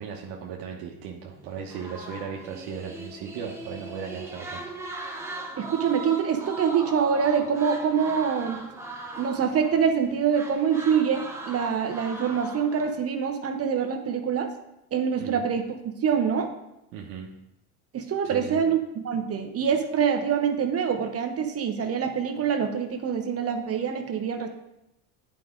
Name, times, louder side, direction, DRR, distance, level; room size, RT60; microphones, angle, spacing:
voice 1, 0.0-4.7 15.2-15.5 16.9-17.3 18.2-18.6, right 7 dB, 65° right, -1 dB, 1.1 m, -37 dB
sound 1, 1.3-10.1 10.3-12.9, right 2 dB, 5° right, 1.0 m, -39 dB
voice 2, 5.6-8.6 9.2-14.5 14.9-15.7 16.0-16.5 17.9-24.5, right 7 dB, 35° right, 6 dB, 0.8 m, -25 dB
9.3 x 5.0 x 3.7 m, 0.89 s
supercardioid pair, 105°, 42 cm